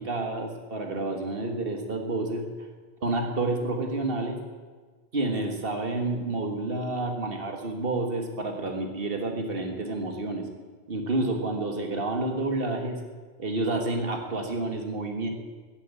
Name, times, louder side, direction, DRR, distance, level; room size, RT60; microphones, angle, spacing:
voice 1, 0.0-2.4 3.0-4.4 5.1-10.4 10.9-13.0 13.4-15.3, right 2 dB, 60° right, 3 dB, 2.0 m, -29 dB
14.0 x 9.8 x 8.4 m, 1.4 s
omnidirectional pair, 1.1 m